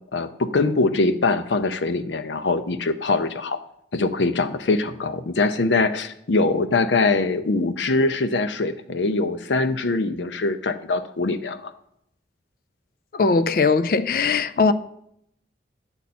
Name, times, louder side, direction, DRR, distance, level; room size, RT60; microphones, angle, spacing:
voice 1, 0.1-3.6 3.9-11.7, left 3 dB, 90° left, 0.7 m, -23 dB
voice 2, 13.1-14.7, left 4 dB, 50° left, 0.4 m, -20 dB
10.5 x 7.1 x 4.2 m
head